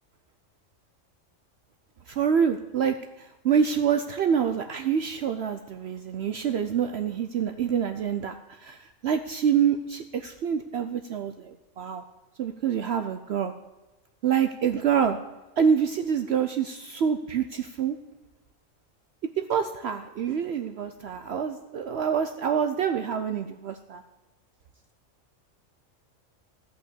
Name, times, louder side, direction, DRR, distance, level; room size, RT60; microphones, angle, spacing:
voice 1, 2.1-12.0 12.4-13.5 14.2-15.2 15.6-18.0 19.4-24.0, right 7 dB, 60° right, 8 dB, 0.8 m, -26 dB
14.0 x 5.6 x 8.4 m, 1.1 s
omnidirectional pair, 1.3 m